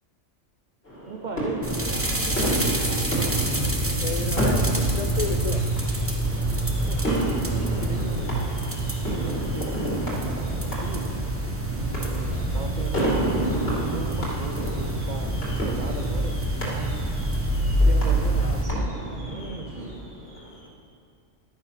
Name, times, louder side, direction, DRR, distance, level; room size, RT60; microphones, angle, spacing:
sound 1, 0.8-20.7, right 1 dB, 45° left, 2.6 m, -32 dB
voice 1, 1.1-2.9 6.8-8.4 9.2-11.2 11.7-16.4 16.6-17.0 17.8-19.9, right 3 dB, 40° right, 5 dB, 0.8 m, -37 dB
sound 2, 1.6-18.6, right 1 dB, 10° right, 0.9 m, -27 dB
sound 3, 1.9-9.7, right 4 dB, 80° right, 1.3 m, -32 dB
voice 2, 3.9-5.7 18.4-18.8, left 5 dB, 70° left, 6 dB, 0.3 m, -32 dB
12.0 x 9.4 x 5.8 m, 2.3 s
omnidirectional pair, 1.3 m